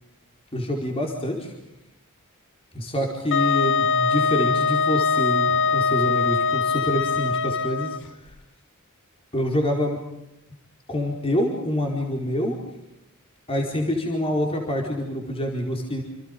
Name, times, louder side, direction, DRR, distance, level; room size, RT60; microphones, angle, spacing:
voice 1, 0.5-1.5 2.7-8.3 9.3-10.0 10.9-12.6 13.5-16.0, left 1 dB, 25° left, 1 dB, 4.6 m, -26 dB
Wind instrument woodwind instrument, 3.3-8.0, left 5 dB, 55° left, 1.0 m, -22 dB
28.5 x 28.0 x 5.4 m, 0.90 s
head